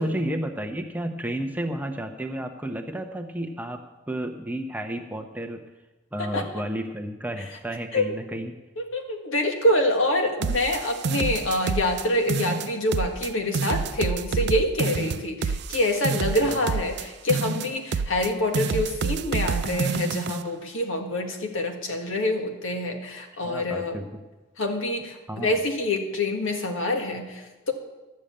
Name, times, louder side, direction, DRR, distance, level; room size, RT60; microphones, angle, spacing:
voice 1, 0.0-5.6 6.1-8.5 16.5-16.7 23.4-24.2 25.3-25.5, right 1 dB, 10° right, 5 dB, 0.7 m, -32 dB
voice 2, 8.8-24.0 24.6-27.7, left 1 dB, 80° left, 4 dB, 1.8 m, -26 dB
sound 1, 10.4-12.0 12.3-13.3 13.5-17.0 17.3-18.3 18.5-20.4, right 5 dB, 55° right, 0.4 m, -28 dB
12.5 x 6.7 x 8.7 m, 1.1 s
head